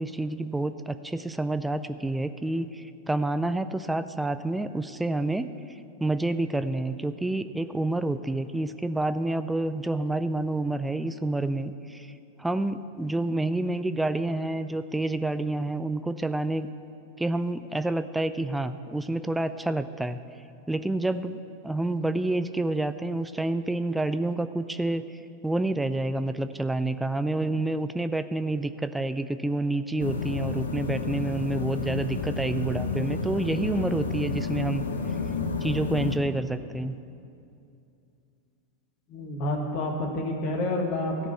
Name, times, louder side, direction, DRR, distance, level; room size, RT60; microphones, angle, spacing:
voice 1, 0.0-12.1 12.4-16.7 17.2-20.2 20.7-25.0 25.4-34.8 35.6-37.0, right 2 dB, 5° right, 11 dB, 0.3 m, -28 dB
sound 1, 30.0-36.2, left 4 dB, 70° left, 0.8 m, -30 dB
voice 2, 39.1-41.3, left 1 dB, 40° left, 2 dB, 1.5 m, -29 dB
15.0 x 5.1 x 8.2 m, 2.6 s
figure-of-eight pair, 90°, 0 cm